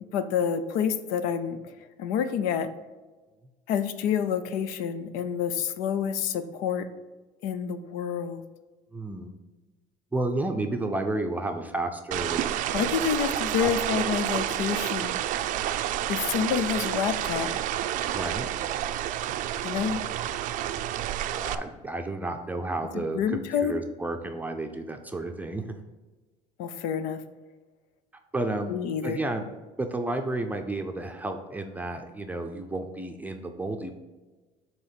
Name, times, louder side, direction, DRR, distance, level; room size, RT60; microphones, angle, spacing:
voice 1, 0.1-1.6 2.0-2.7 3.7-6.9 7.4-8.4 12.7-15.1 16.1-17.5 19.6-20.0 22.9-23.8 26.6-27.2 28.7-29.2, left 8 dB, 80° left, 11 dB, 0.6 m, -28 dB
voice 2, 8.9-9.4 10.1-13.0 13.6-13.7 18.1-18.5 21.3-25.8 28.3-28.8 29.0-29.5 29.8-33.9, right 2 dB, 10° right, 4 dB, 0.6 m, -32 dB
sound 1, 12.1-21.5, right 12 dB, 60° right, 0.4 m, -29 dB
7.6 x 3.0 x 5.7 m, 1.3 s
cardioid pair, 125°, 15 cm